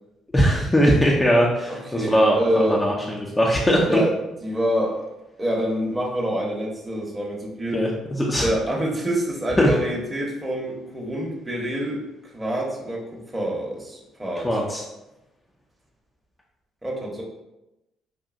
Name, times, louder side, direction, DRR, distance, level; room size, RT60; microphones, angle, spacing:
voice 1, 0.3-4.0 7.7-8.5 9.6-9.7 14.4-14.8, equal, 15° left, -3 dB, 0.6 m, -20 dB
voice 2, 1.7-2.8 3.8-4.1 4.4-5.1 5.4-7.8 8.4-14.5 16.8-17.2, equal, 15° right, -3 dB, 1.0 m, -26 dB
5.1 x 2.6 x 2.5 m, 0.94 s
hypercardioid pair, 50°, 0 cm